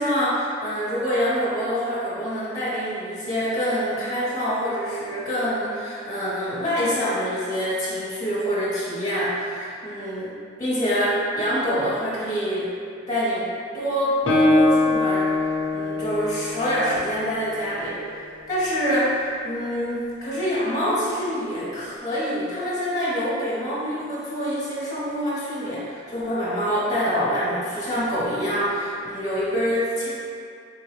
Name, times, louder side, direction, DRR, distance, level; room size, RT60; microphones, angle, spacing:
voice 1, 0.0-10.3 10.6-12.7 13.1-13.5 13.7-15.4 15.7-30.1, equal, 20° left, -9 dB, 0.8 m, -26 dB
Guitar, 14.3-17.9, left 2 dB, 70° left, 0.6 m, -22 dB
3.4 x 3.0 x 3.1 m, 2.3 s
head